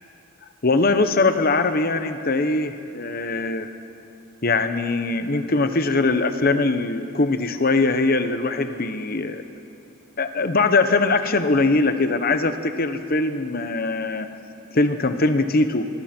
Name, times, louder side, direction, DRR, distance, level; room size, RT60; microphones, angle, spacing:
voice 1, 0.6-3.7 4.4-9.4 10.2-14.3 14.7-15.9, left 3 dB, 45° left, 9 dB, 1.0 m, -21 dB
27.5 x 21.5 x 4.5 m, 2.8 s
head